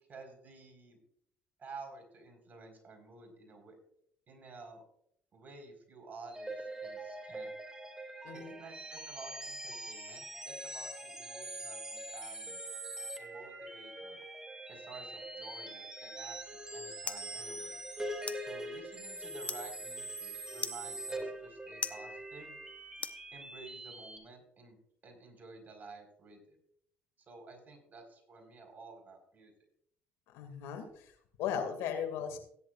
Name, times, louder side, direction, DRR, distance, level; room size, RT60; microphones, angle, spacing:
voice 1, 0.1-1.0 1.6-3.8 4.3-4.8 5.3-7.5 8.3-12.6 13.2-14.2 14.7-17.8 18.4-22.5 23.3-26.6 27.3-29.5, right 3 dB, 40° right, 3 dB, 4.7 m, -52 dB
sound 1, 6.3-24.2, right 1 dB, 15° right, 2.5 m, -43 dB
sound 2, 16.2-23.8, left 5 dB, 30° left, 0.9 m, -46 dB
voice 2, 30.3-31.1 31.4-32.4, left 8 dB, 75° left, 6 dB, 2.3 m, -37 dB
17.0 x 10.5 x 2.5 m, 0.68 s
hypercardioid pair, 65°, 5 cm